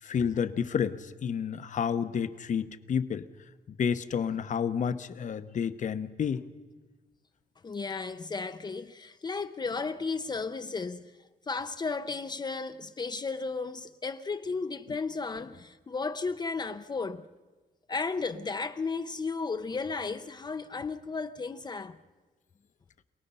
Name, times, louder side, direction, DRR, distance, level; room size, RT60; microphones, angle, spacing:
voice 1, 0.0-3.3 3.8-6.4, left 7 dB, 55° left, 0.9 m, -30 dB
voice 2, 7.6-11.1 11.5-17.3 17.9-22.0, left 4 dB, 25° left, 0.6 m, -34 dB
27.5 x 18.5 x 5.5 m
cardioid pair, 120°, 15 cm